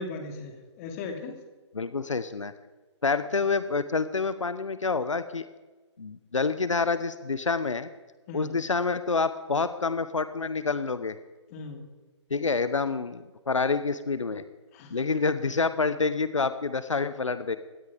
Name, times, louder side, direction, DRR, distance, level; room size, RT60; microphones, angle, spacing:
voice 1, 0.0-1.3 8.3-8.6 11.5-11.8 14.7-14.9, left 3 dB, 30° left, 4 dB, 2.7 m, -37 dB
voice 2, 1.7-2.5 3.0-5.4 6.0-7.9 8.3-11.2 12.3-14.4 14.9-17.6, left 4 dB, 90° left, 13 dB, 0.9 m, -27 dB
17.5 x 13.0 x 5.1 m, 1.2 s
figure-of-eight pair, 145°, 16 cm